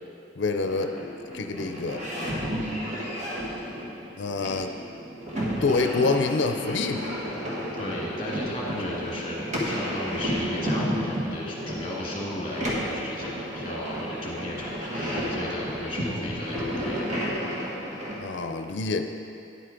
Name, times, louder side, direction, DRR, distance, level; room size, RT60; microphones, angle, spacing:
voice 1, 0.4-1.0 1.3-2.0 4.2-4.7 5.6-7.1 8.7-8.9 18.2-19.0, left 3 dB, 75° left, 7 dB, 0.5 m, -26 dB
sound 1, 0.6-18.2, equal, 40° right, 1.6 m, -32 dB
voice 2, 7.7-9.4 9.6-17.0, left 1 dB, 30° left, -4 dB, 1.9 m, -35 dB
10.0 x 7.9 x 3.8 m, 2.6 s
head